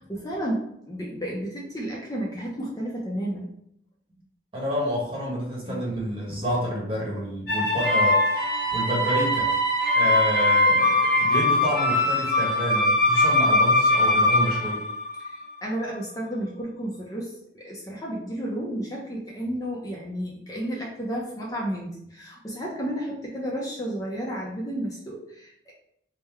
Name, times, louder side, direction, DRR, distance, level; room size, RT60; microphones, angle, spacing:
voice 1, 0.0-3.5 5.6-5.8 6.3-6.4 15.2-25.7, right 1 dB, 20° left, -3 dB, 0.6 m, -32 dB
voice 2, 4.5-9.5 9.9-14.8, equal, 30° right, -4 dB, 1.1 m, -29 dB
sound 1, 7.5-15.4, left 1 dB, 50° left, 1.4 m, -21 dB
3.6 x 2.2 x 4.4 m, 0.73 s
head